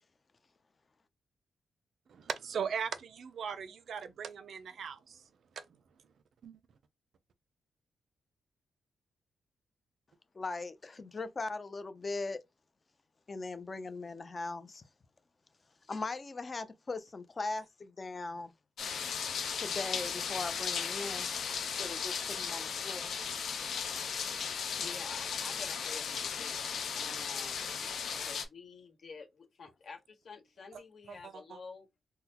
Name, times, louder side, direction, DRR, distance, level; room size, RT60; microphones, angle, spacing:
voice 1, 2.1-5.2 5.6-5.7 6.4-6.6 30.7-30.8 31.1-31.6, right 7 dB, 65° right, 0.4 m, -39 dB
voice 2, 10.3-12.4 13.3-14.8 15.9-18.5 19.5-21.3 21.7-23.1, left 3 dB, 30° left, 0.5 m, -39 dB
sound 1, 18.8-28.4, left 6 dB, 70° left, 0.7 m, -36 dB
voice 3, 24.8-27.7 28.3-31.9, left 4 dB, 55° left, 1.0 m, -49 dB
3.8 x 2.1 x 2.9 m
wide cardioid pair, 130°, 0 cm